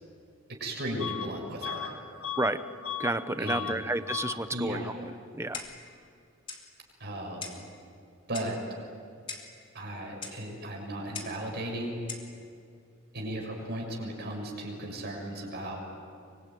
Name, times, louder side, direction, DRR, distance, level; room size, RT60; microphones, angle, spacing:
voice 1, 0.5-1.9 3.4-3.8 4.5-4.9 7.0-7.5 8.3-8.6 9.7-12.0 13.1-15.8, right 1 dB, 55° right, 0 dB, 6.6 m, -36 dB
Bus / Alarm, 1.0-1.3 1.6-3.2 3.4-3.8 4.1-4.4, left 9 dB, 85° left, 1.6 m, -36 dB
voice 2, 3.0-5.6, right 2 dB, 15° right, 11 dB, 0.8 m, -31 dB
Clock, 5.5-5.9 6.5-6.7 7.4-7.7 8.3-8.6 9.3-9.6 10.2-10.4 11.1-11.4 12.1-12.3, left 5 dB, 25° left, 3.2 m, -40 dB
24.0 x 24.0 x 9.4 m, 2.3 s
head